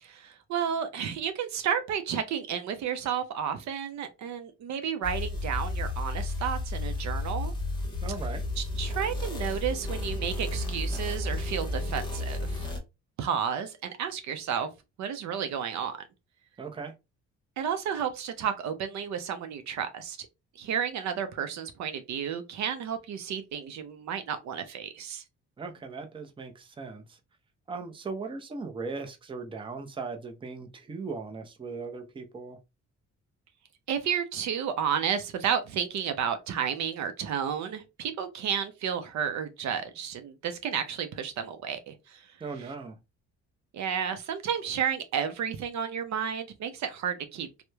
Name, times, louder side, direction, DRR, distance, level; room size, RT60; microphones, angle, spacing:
voice 1, 0.0-7.5 8.6-12.7 13.2-14.7 15.0-16.0 17.6-20.3 20.6-25.2 33.9-42.3 43.7-47.6, right 8 dB, 65° right, 0.5 m, -32 dB
sound 1, 5.0-12.8, left 2 dB, 15° left, 0.9 m, -32 dB
voice 2, 8.0-8.4 16.6-16.9 25.6-27.2 27.7-32.6 42.4-43.0, right 4 dB, 15° right, 0.5 m, -38 dB
2.9 x 2.1 x 2.2 m
cardioid pair, 90°, 30 cm